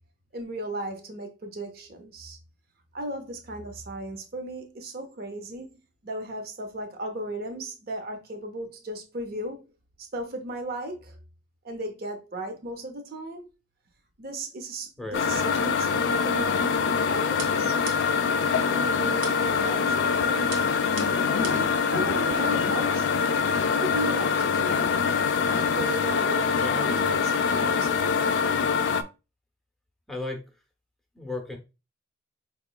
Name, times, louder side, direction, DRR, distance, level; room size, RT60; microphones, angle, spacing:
voice 1, 0.3-2.4 2.9-5.7 6.0-9.7 10.1-11.2 11.6-13.5 14.2-17.8 18.7-20.5 21.4-23.2 23.8-24.8 25.8-28.2, right 1 dB, 50° right, 0.6 m, -36 dB
sound 1, 15.1-29.0, left 5 dB, 60° left, 0.4 m, -24 dB
sound 2, 17.4-18.3 19.2-19.7 20.5-21.8, right 5 dB, 85° right, 1.0 m, -40 dB
voice 2, 26.6-26.9 30.1-30.4 31.2-31.6, left 2 dB, ahead, 0.6 m, -34 dB
4.7 x 3.0 x 2.2 m
head